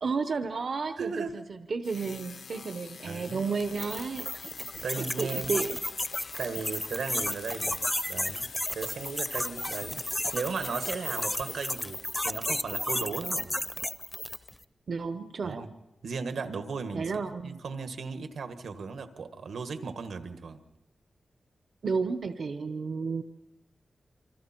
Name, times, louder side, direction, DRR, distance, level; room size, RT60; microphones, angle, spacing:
voice 1, 0.0-4.3 5.0-5.8 14.9-15.6 16.9-17.6 21.8-23.2, right 4 dB, 55° right, 8 dB, 0.8 m, -32 dB
voice 2, 1.0-1.4 3.0-3.4 4.8-5.5 6.4-10.0 10.3-13.6 15.4-15.7 16.0-20.6, right 5 dB, 80° right, 8 dB, 1.7 m, -36 dB
sound 1, 1.8-12.4, left 5 dB, 85° left, 1.3 m, -46 dB
sound 2, 3.6-14.5, left 1 dB, 10° left, 0.6 m, -33 dB
27.5 x 25.5 x 4.5 m, 1.0 s
wide cardioid pair, 170°, 0 cm